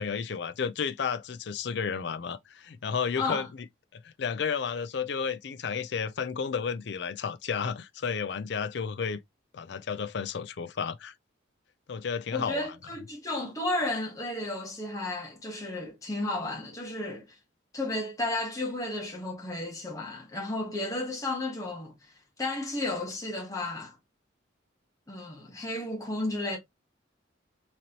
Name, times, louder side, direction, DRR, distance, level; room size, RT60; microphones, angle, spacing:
voice 1, 0.0-3.5 3.9-9.2 9.5-11.1 11.9-12.7, left 6 dB, 60° left, 0.4 m, -32 dB
voice 2, 12.3-17.3 17.7-21.9 22.4-23.9 25.1-26.6, left 2 dB, 15° left, 1.2 m, -33 dB
4.0 x 3.1 x 2.8 m
head